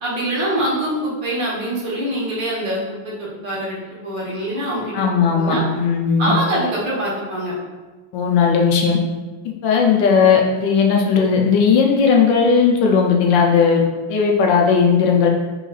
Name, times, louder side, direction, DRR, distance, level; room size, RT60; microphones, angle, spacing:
voice 1, 0.0-5.6 6.2-7.5, right 1 dB, 70° right, -6 dB, 1.9 m, -24 dB
voice 2, 4.9-6.3 8.1-9.0 9.6-13.8 14.1-15.3, left 6 dB, 80° left, 0 dB, 1.3 m, -16 dB
4.7 x 3.7 x 2.4 m, 1.2 s
omnidirectional pair, 2.1 m